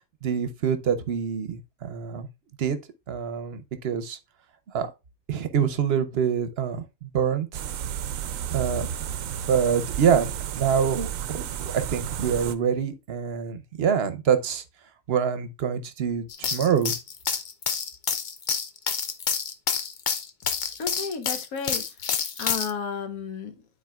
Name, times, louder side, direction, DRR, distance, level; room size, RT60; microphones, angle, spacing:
voice 1, 0.0-2.3 2.6-2.8 3.1-4.2 4.7-4.9 5.3-7.6 8.5-8.9 9.2-14.6 15.1-16.9, right 7 dB, 55° right, 0.9 m, -26 dB
sound 1, 7.5-12.5, right 9 dB, 75° right, 1.0 m, -32 dB
sound 2, 16.3-22.7, left 6 dB, 50° left, 0.6 m, -28 dB
voice 2, 20.8-23.7, left 5 dB, 85° left, 1.3 m, -33 dB
12.0 x 4.1 x 2.3 m
omnidirectional pair, 1.5 m